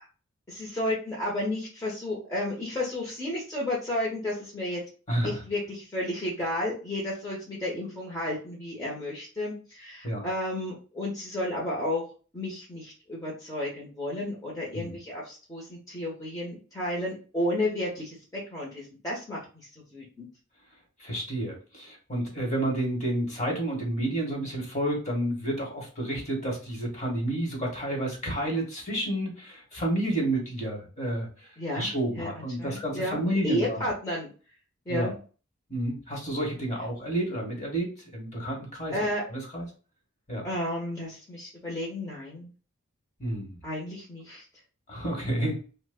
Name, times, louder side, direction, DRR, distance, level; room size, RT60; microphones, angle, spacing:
voice 1, 0.5-4.8 5.2-12.0 12.3-19.4 19.9-20.3 31.6-31.9 32.2-34.3 34.9-35.1 38.9-39.2 40.4-42.5 43.6-44.4, left 1 dB, 15° left, -5 dB, 0.9 m, -32 dB
voice 2, 5.1-5.4 10.0-10.3 14.7-15.0 21.0-31.5 31.7-33.8 34.9-35.1 35.7-38.9 39.3-39.7 40.3-40.5 43.2-43.6 44.9-45.7, right 1 dB, 35° left, 0 dB, 1.3 m, -30 dB
3.0 x 2.1 x 3.5 m, 0.36 s
head